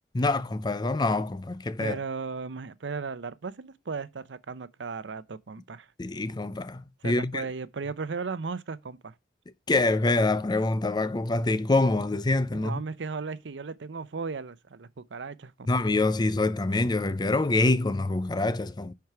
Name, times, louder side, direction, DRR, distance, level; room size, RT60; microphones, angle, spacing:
voice 1, 0.1-2.0 6.0-7.4 9.7-12.8 15.7-18.9, left 2 dB, 25° left, 0.5 m, -25 dB
voice 2, 1.8-5.9 7.0-9.1 12.5-15.7, right 4 dB, 90° right, 0.6 m, -36 dB
10.5 x 4.7 x 4.6 m
head